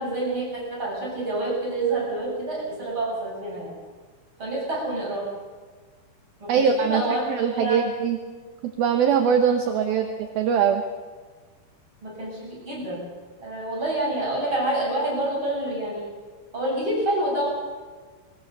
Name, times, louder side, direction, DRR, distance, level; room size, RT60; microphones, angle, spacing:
voice 1, 0.0-3.7 4.4-5.3 6.4-7.8 9.9-10.0 12.0-13.1 13.4-16.1 16.5-17.5, right 1 dB, 25° right, -4 dB, 8.2 m, -28 dB
voice 2, 6.5-8.2 8.8-10.8, right 7 dB, 70° right, 5 dB, 2.5 m, -22 dB
23.0 x 20.0 x 6.9 m, 1.4 s
omnidirectional pair, 5.3 m